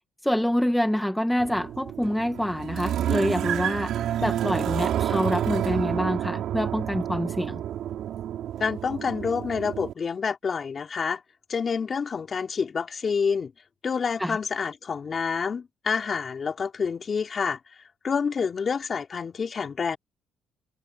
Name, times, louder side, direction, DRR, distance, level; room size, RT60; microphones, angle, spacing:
voice 1, 0.2-3.9 4.2-7.6 14.2-14.4, equal, 5° left, 1.3 m, -26 dB
sound 1, 1.4-9.9, right 11 dB, 75° right, 5.5 m, -29 dB
voice 2, 8.6-11.2 11.5-13.5 13.8-17.6 18.0-20.0, left 6 dB, 45° left, 4.2 m, -28 dB
cardioid pair, 90°, 0 cm